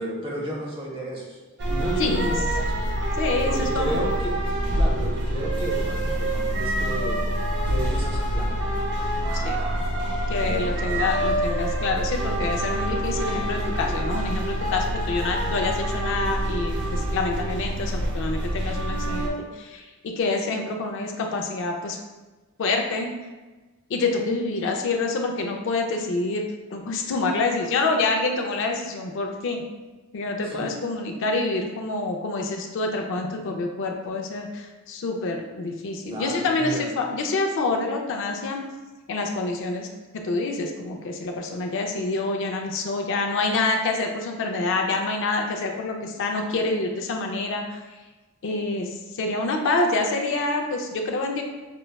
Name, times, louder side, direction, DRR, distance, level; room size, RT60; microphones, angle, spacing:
voice 1, 0.0-1.4 1.7-2.7 3.4-4.4 4.8-7.2 7.7-8.6 10.4-10.9 30.4-30.7 36.1-36.9, right 1 dB, 25° right, -3 dB, 0.7 m, -32 dB
sound 1, 1.6-19.3, right 1 dB, 55° right, 0.5 m, -26 dB
voice 2, 2.0-2.3 3.2-4.0 9.3-9.6 10.3-22.0 22.6-23.1 23.9-26.4 26.7-29.6 30.1-38.6 39.1-39.9 40.1-47.8 48.4-51.4, left 3 dB, 60° left, 3 dB, 0.4 m, -27 dB
5.2 x 2.2 x 2.2 m, 1.2 s
head